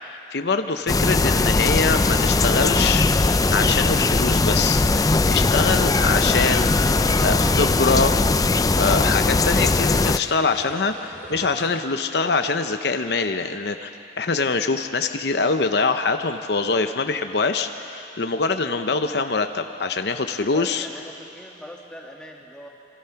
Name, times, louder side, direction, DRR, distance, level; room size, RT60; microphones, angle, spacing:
voice 1, 0.0-8.2 8.8-13.9 14.2-20.9, left 4 dB, 65° left, 7 dB, 0.8 m, -24 dB
sound 1, 0.9-10.2, left 3 dB, 20° left, 0.4 m, -19 dB
sound 2, 6.0-9.6 9.9-12.4 12.8-12.9, right 1 dB, 45° right, 4.6 m, -42 dB
voice 2, 20.3-22.7, equal, 5° left, -1 dB, 2.1 m, -41 dB
27.5 x 24.0 x 5.8 m, 2.9 s
head